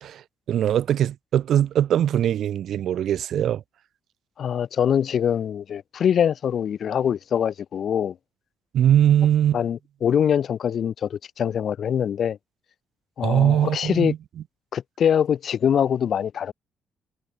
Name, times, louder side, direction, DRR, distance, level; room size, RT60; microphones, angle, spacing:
voice 1, 0.0-3.6 8.7-9.6 13.2-14.2, right 10 dB, 70° right, 1.2 m, -21 dB
voice 2, 4.4-8.2 9.5-12.4 13.2-14.1 14.7-16.5, left 8 dB, 60° left, 5.2 m, -23 dB
cardioid pair, 90°, 0 cm